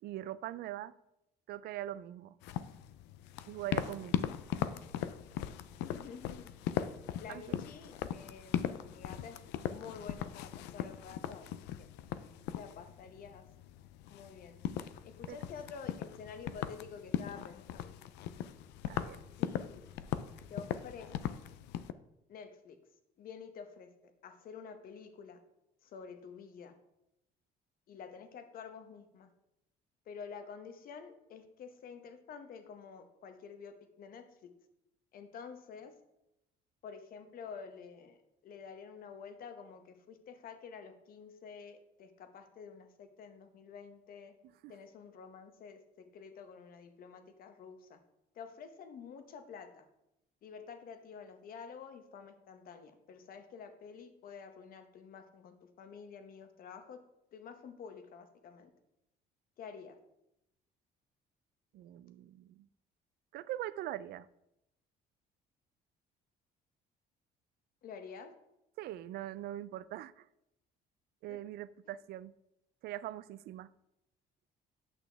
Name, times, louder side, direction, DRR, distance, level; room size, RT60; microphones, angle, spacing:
voice 1, 0.0-0.9 1.5-2.4 3.5-4.3 7.3-7.6 15.3-15.4 18.9-19.2 44.4-44.7 61.7-62.7 63.3-64.3 68.8-70.3 71.2-72.3 72.8-73.7, right 13 dB, 70° right, 17 dB, 0.4 m, -42 dB
sound 1, 2.4-21.9, left 11 dB, 90° left, 0.4 m, -39 dB
voice 2, 5.8-6.4 7.2-11.9 12.5-13.5 14.1-14.6 15.0-18.0 19.4-19.8 20.5-21.5 22.3-22.8 23.2-23.9 24.2-25.4 25.8-26.8 27.9-29.3 30.1-34.5 35.1-35.9 36.8-38.2 38.4-44.3 44.7-48.0 48.3-49.9 50.4-57.0 57.3-58.7 59.6-60.0 67.8-68.3 71.3-71.4, left 6 dB, 60° left, 8 dB, 1.0 m, -49 dB
8.8 x 6.1 x 3.4 m, 0.85 s
cardioid pair, 110°, 17 cm